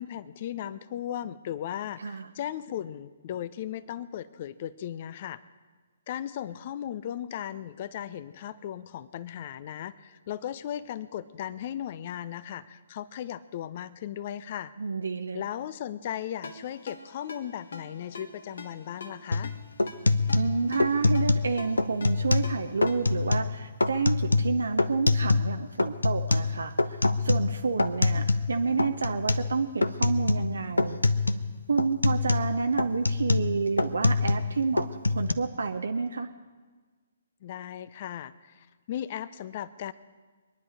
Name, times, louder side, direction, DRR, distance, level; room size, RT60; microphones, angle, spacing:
voice 1, 0.0-5.4 6.1-14.7 15.3-19.5 37.4-39.9, left 10 dB, 40° left, 16 dB, 0.6 m, -37 dB
voice 2, 14.8-15.4 20.3-31.0 31.7-34.9 35.1-36.3, right 4 dB, 70° right, 6 dB, 0.7 m, -29 dB
Ringtone, 16.4-23.3, left 3 dB, 65° left, 1.4 m, -45 dB
sound 1, 19.3-19.5 19.8-21.5 21.8-22.5 22.8-23.5 23.8-25.5 25.8-28.5 28.8-29.5 29.8-30.5 30.8-31.5 31.8-34.5 34.8-35.3, left 3 dB, 80° left, 0.7 m, -25 dB
24.0 x 10.5 x 4.9 m, 1.4 s
figure-of-eight pair, 130°, 0 cm